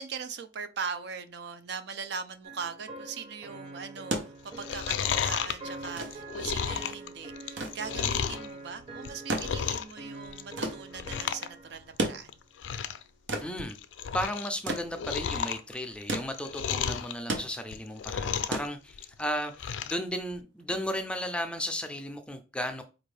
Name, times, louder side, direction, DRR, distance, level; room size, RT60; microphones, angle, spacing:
voice 1, 0.0-12.3, right 6 dB, 65° right, 0.5 m, -40 dB
sound 1, 2.4-11.9, right 2 dB, 35° right, 0.8 m, -45 dB
sound 2, 4.1-19.4 20.6-20.7, right 2 dB, 85° right, 0.8 m, -37 dB
Chewing mastication, 4.5-8.5 8.9-10.0 10.3-10.6 10.9-11.5 11.8-11.9 12.3-12.4 12.6-13.0 13.4-14.5 14.8-17.1 17.6-18.7 18.9-20.0 20.4-20.5, left 8 dB, 85° left, 0.4 m, -32 dB
voice 2, 13.4-13.8 14.1-22.8, equal, 5° left, 0.4 m, -34 dB
4.4 x 2.5 x 3.2 m
head